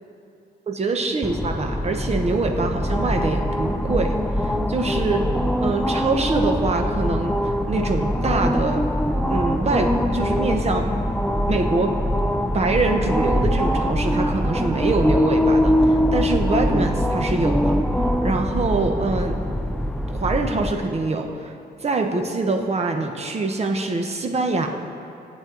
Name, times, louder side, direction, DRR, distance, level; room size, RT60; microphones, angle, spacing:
voice 1, 0.7-5.4 5.6-10.9 11.5-12.0 12.5-17.8 18.2-19.4 20.1-21.5 21.8-24.7, right 3 dB, 35° right, 4 dB, 1.1 m, -24 dB
sound 1, 1.2-20.7, equal, 5° left, 0.5 m, -23 dB
16.5 x 8.7 x 3.9 m, 2.7 s
cardioid pair, 110°, 18 cm